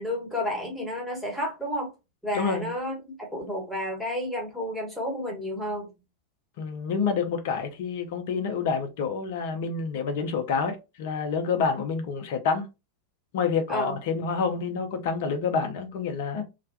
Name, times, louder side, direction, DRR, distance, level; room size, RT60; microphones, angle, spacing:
voice 1, 0.0-1.9 2.2-5.9 13.7-13.9, left 1 dB, ahead, 1.1 m, -31 dB
voice 2, 2.3-2.7 6.6-12.7 13.3-16.4, left 5 dB, 50° left, 0.5 m, -28 dB
2.4 x 2.1 x 2.5 m
figure-of-eight pair, 90°, 0 cm